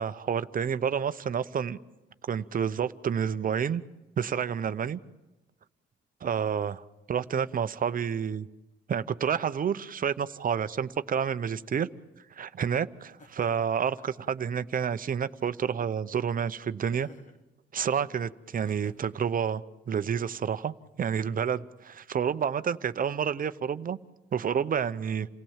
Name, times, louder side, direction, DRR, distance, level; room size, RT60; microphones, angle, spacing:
voice 1, 0.0-1.8 2.3-3.8 4.2-5.0 6.2-8.5 8.9-11.9 12.3-17.1 17.7-24.0 24.3-25.3, right 7 dB, 45° right, 13 dB, 0.8 m, -29 dB
Laughter, 13.2-14.3 15.3-16.0 16.9-17.4 18.5-19.3, left 2 dB, 40° left, 2.0 m, -53 dB
28.5 x 17.0 x 7.3 m, 1.0 s
cardioid pair, 90°, 20 cm